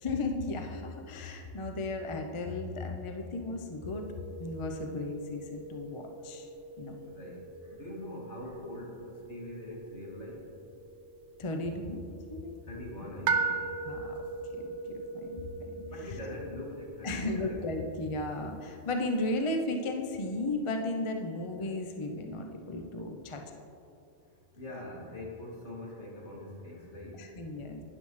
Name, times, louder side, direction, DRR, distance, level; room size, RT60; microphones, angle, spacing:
voice 1, 0.0-4.1 4.4-6.5 6.8-7.0 11.4-12.6 13.8-14.2 14.5-14.6 14.9-16.2 17.0-23.5 27.2-27.8, left 2 dB, 35° left, 3 dB, 0.6 m, -35 dB
sound 1, 3.8-19.4, right 4 dB, 70° right, 1.0 m, -40 dB
voice 2, 7.0-10.5 12.6-13.7 14.0-14.1 15.8-17.6 24.5-27.3, left 1 dB, 60° left, -5 dB, 2.6 m, -43 dB
12.5 x 9.9 x 3.2 m, 2.6 s
omnidirectional pair, 1.3 m